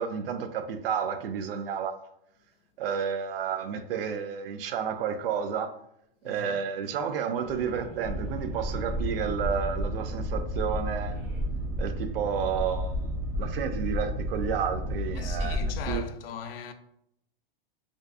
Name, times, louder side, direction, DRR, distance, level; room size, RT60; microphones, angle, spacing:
voice 1, 0.0-1.9 2.8-5.7 6.2-11.2 11.8-13.0 13.4-15.6 15.9-16.0, right 7 dB, 75° right, 0.4 m, -31 dB
voice 2, 6.2-6.6 15.1-16.7, left 7 dB, 80° left, 0.4 m, -39 dB
sound 1, 7.3-10.2 10.9-11.5, equal, 25° right, 1.2 m, -47 dB
Boat Water vehicle, 8.0-16.0, equal, 45° right, 1.1 m, -32 dB
2.5 x 2.3 x 2.4 m
hypercardioid pair, 140°, 29 cm